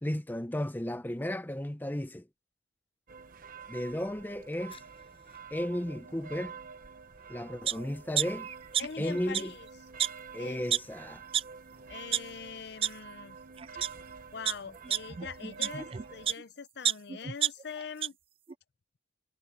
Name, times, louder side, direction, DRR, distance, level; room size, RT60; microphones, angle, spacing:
voice 1, 0.0-2.3 3.7-4.8 5.5-6.5 7.3-8.5 9.0-9.5 10.3-11.2, left 1 dB, 10° left, 0.6 m, -34 dB
sound 1, 3.1-16.4, right 5 dB, 45° right, 1.1 m, -48 dB
sound 2, 4.2-12.9, left 6 dB, 30° left, 7.4 m, -67 dB
sound 3, 7.7-7.8 8.2-9.1 9.3-9.4 10.0-10.1 10.7-10.8 11.3-11.4 11.9-12.2 12.8-12.9 13.6-13.9 14.5-16.4 16.8-18.1 18.5-18.6, right 9 dB, 30° right, 0.3 m, -29 dB
voice 2, 8.8-9.7 10.4-10.6 11.9-13.4 14.3-18.2, left 6 dB, 55° left, 0.6 m, -43 dB
head